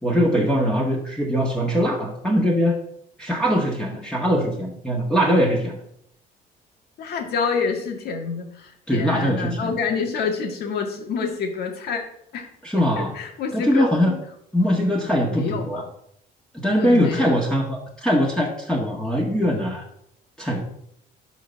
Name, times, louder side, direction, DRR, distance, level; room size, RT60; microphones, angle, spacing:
voice 1, 0.0-2.8 3.2-5.8 8.9-9.7 12.6-13.1 13.5-14.1 14.5-15.8 16.5-19.8 20.4-20.6, equal, 5° left, -2 dB, 1.6 m, -21 dB
voice 2, 7.0-12.0 12.3-12.5 12.7-14.2 14.6-14.7 15.2-15.8 16.8-17.3, left 5 dB, 70° left, 3 dB, 1.8 m, -27 dB
11.5 x 4.0 x 5.7 m, 0.73 s
cardioid pair, 110°, 17 cm